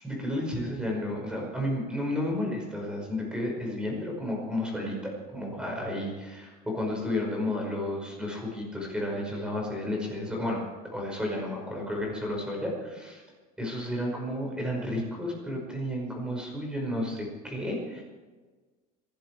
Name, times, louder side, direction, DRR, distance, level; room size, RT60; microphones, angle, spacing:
voice 1, 0.0-10.6 10.9-13.2 13.6-18.0, left 1 dB, 5° right, -1 dB, 5.4 m, -32 dB
26.0 x 12.0 x 4.7 m, 1.3 s
cardioid pair, 150°, 20 cm